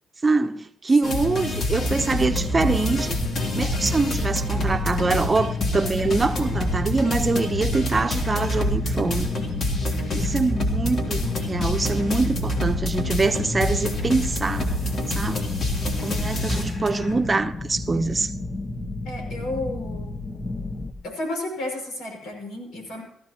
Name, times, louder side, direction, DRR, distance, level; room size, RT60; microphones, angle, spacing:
voice 1, 0.2-3.2 3.5-9.3 10.1-14.7 15.1-15.6 16.0-18.3, right 3 dB, 25° right, 1.0 m, -24 dB
sound 1, 1.0-17.1, left 1 dB, 55° left, 3.3 m, -27 dB
sound 2, 1.8-20.9, left 2 dB, 35° left, 1.8 m, -32 dB
voice 2, 19.0-20.1 21.0-23.0, left 2 dB, 80° left, 6.3 m, -32 dB
18.5 x 14.5 x 3.0 m
cardioid pair, 90°, 0 cm